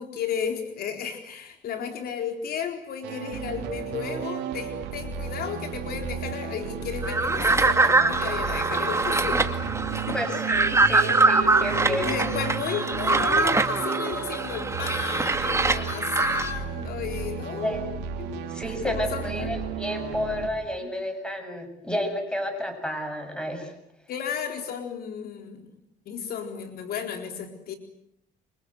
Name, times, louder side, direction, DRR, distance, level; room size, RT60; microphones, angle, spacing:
voice 1, 0.0-9.6 9.9-10.2 11.9-17.8 18.2-19.6 20.8-20.9 24.1-25.7 26.1-27.7, left 7 dB, 65° left, 5 dB, 4.2 m, -33 dB
sound 1, 3.0-20.5, right 7 dB, 90° right, 3.4 m, -34 dB
sound 2, 7.0-16.5, right 3 dB, 15° right, 2.1 m, -23 dB
voice 2, 10.1-12.1 17.6-17.8 18.5-23.7, equal, 5° left, 6 dB, 7.9 m, -31 dB
28.0 x 26.0 x 8.1 m, 0.75 s
cardioid pair, 110°, 17 cm